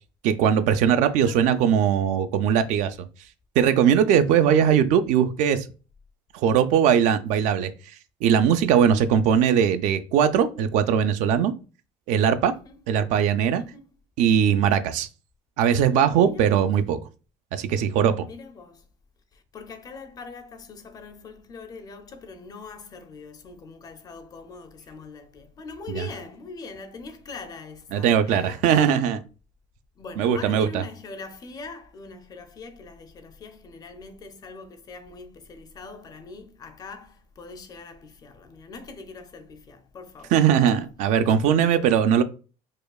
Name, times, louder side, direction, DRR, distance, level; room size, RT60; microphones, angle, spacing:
voice 1, 0.2-3.0 3.6-5.7 6.3-7.7 8.2-11.5 12.1-12.5 12.9-13.6 14.2-15.1 15.6-17.0 17.5-18.3 25.9-26.0 27.9-29.2 30.2-30.8 40.3-42.2, right 8 dB, 65° right, 0.4 m, -20 dB
voice 2, 1.3-1.7 4.4-4.6 8.7-9.1 12.5-12.8 13.6-13.9 16.1-16.7 18.3-18.8 19.3-28.6 30.0-40.8, left 4 dB, 30° left, 0.5 m, -42 dB
4.8 x 2.3 x 2.3 m
cardioid pair, 140°, 14 cm